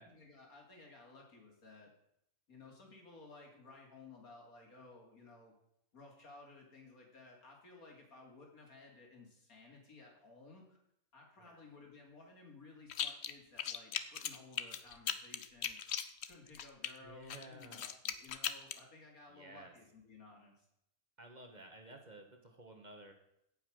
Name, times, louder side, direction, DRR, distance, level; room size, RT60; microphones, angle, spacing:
voice 1, 0.0-1.9 2.5-5.5 5.9-10.8 11.1-16.0 16.3-20.7, left 3 dB, 85° left, 0 dB, 3.3 m, -57 dB
sound 1, 12.9-13.3 13.6-16.9 17.3-18.8, left 8 dB, 55° left, 0.9 m, -38 dB
voice 2, 17.0-17.9 19.3-19.7 21.2-23.1, right 2 dB, 30° right, 4 dB, 1.5 m, -54 dB
16.5 x 5.8 x 6.4 m, 0.77 s
omnidirectional pair, 1.5 m